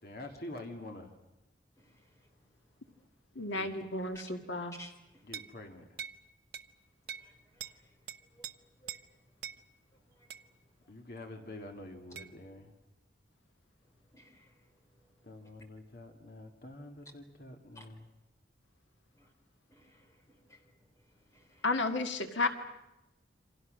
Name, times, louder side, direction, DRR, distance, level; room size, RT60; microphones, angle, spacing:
voice 1, 0.0-1.1 3.5-3.9 5.2-6.0 10.9-12.7 15.2-18.1, left 1 dB, 50° left, 4 dB, 2.1 m, -47 dB
voice 2, 1.8-2.2 2.9-3.1 4.1-4.2 4.7-5.3 7.2-8.5 8.8-9.0 10.1-10.3 10.8-10.9 14.1-14.5 17.7-17.9 19.1-19.3 19.7-20.7 21.1-21.9, equal, 15° left, 3 dB, 3.4 m, -57 dB
voice 3, 3.4-4.7 21.6-22.5, left 3 dB, 80° left, 5 dB, 1.8 m, -32 dB
sound 1, 5.3-5.5 6.0-6.2 6.5-6.7 7.1-7.3 7.6-7.8 8.1-8.5 8.9-9.0 9.4-9.6 10.3-10.5 12.2-12.3, right 9 dB, 55° right, 0.9 m, -42 dB
28.5 x 25.5 x 6.4 m, 0.96 s
head